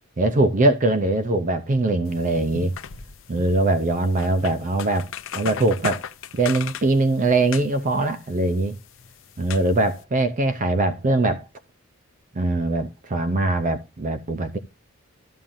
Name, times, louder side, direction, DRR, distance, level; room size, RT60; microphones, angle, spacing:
voice 1, 0.2-2.7 3.3-6.0 6.3-8.8 9.4-11.5 12.3-14.6, right 2 dB, 35° right, 0.5 m, -22 dB
sound 1, 2.1-10.0, left 7 dB, 65° left, 0.6 m, -38 dB
13.0 x 7.2 x 2.6 m
head